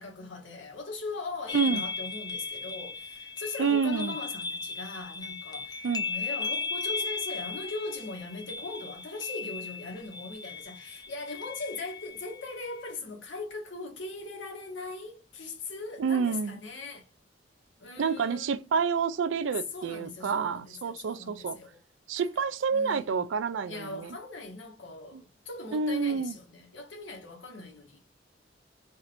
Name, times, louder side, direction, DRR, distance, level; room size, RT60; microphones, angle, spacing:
voice 1, 0.0-17.1 17.8-18.7 19.4-21.8 22.2-22.3 22.7-23.3 23.6-28.0, left 3 dB, 90° left, 1.5 m, -40 dB
sound 1, 1.5-12.9, left 4 dB, 20° left, 0.5 m, -37 dB
voice 2, 1.5-1.8 3.6-4.2 5.8-6.1 16.0-16.6 18.0-21.6 22.1-24.2 25.1-25.2 25.7-26.4, right 5 dB, 85° right, 0.4 m, -28 dB
4.2 x 3.3 x 2.5 m
head